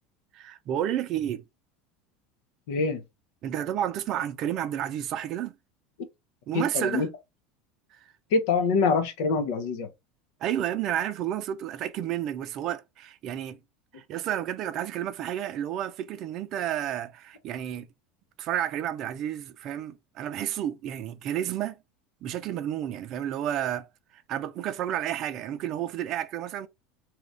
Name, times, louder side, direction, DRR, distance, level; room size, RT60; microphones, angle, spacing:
voice 1, 0.3-1.4 3.4-5.5 6.5-7.1 10.4-13.6 13.9-17.9 18.4-21.8 22.2-23.9 24.1-26.7, right 11 dB, 55° right, 0.5 m, -31 dB
voice 2, 2.7-3.0 6.5-7.1 8.3-9.9, left 4 dB, 70° left, 0.8 m, -25 dB
2.9 x 2.4 x 3.4 m
hypercardioid pair, 90°, 0 cm